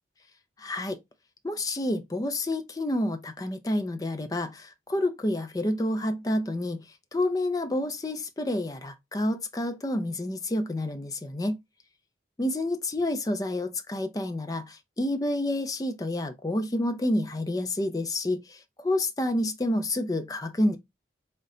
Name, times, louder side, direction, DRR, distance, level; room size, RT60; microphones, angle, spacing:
voice 1, 0.6-1.0 1.4-6.8 7.1-11.6 12.4-20.8, left 1 dB, 20° left, 0.4 m, -29 dB
4.0 x 2.1 x 3.7 m
head